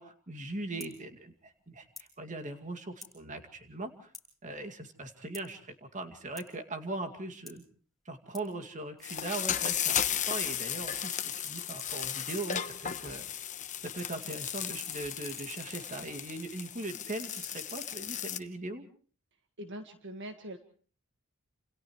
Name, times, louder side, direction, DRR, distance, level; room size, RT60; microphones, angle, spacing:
voice 1, 0.0-4.1 4.4-7.6 8.1-10.0 10.3-13.3 13.8-18.8, right 2 dB, 35° right, 5 dB, 2.3 m, -40 dB
sound 1, 0.8-1.0 1.9-2.1 3.0-3.2 4.1-4.3 5.3-5.5 6.4-6.5 7.5-7.6 8.3-8.5 9.0-9.1 9.8-10.5 10.8-13.5 13.8-15.8 17.0-17.9, left 3 dB, ahead, 5.0 m, -49 dB
sound 2, 9.0-18.4, left 9 dB, 35° left, 1.0 m, -35 dB
voice 2, 19.6-20.6, equal, 55° right, 6 dB, 1.6 m, -42 dB
29.5 x 27.5 x 3.2 m, 0.43 s
head